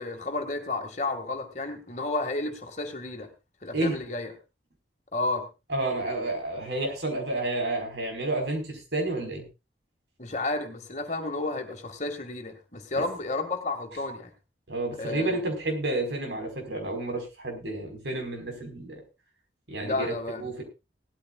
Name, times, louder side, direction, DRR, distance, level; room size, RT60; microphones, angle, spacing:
voice 1, 0.0-3.3 3.6-4.3 5.1-5.5 10.2-14.3 15.0-15.4 19.8-20.5, left 2 dB, 40° left, 6 dB, 2.1 m, -32 dB
voice 2, 5.7-9.4 14.7-19.0 19.7-20.1 20.4-20.6, right 2 dB, 80° right, 3 dB, 4.9 m, -30 dB
18.5 x 13.5 x 2.5 m, 0.27 s
head